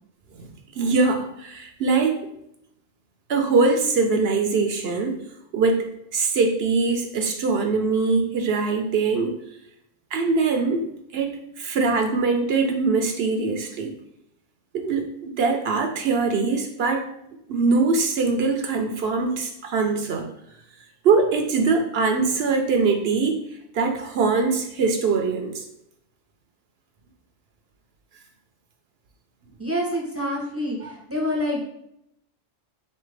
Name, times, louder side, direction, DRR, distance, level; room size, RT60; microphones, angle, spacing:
voice 1, 0.8-2.2 3.3-5.2 5.5-9.3 10.1-10.8 11.1-11.3 11.6-13.9 14.7-17.0 17.5-20.3 21.0-23.4 23.7-25.6 30.8-30.9, right 4 dB, 65° right, 4 dB, 0.8 m, -22 dB
voice 2, 29.6-31.8, left 1 dB, 15° right, -2 dB, 0.7 m, -27 dB
4.2 x 3.3 x 3.2 m, 0.78 s
omnidirectional pair, 1.2 m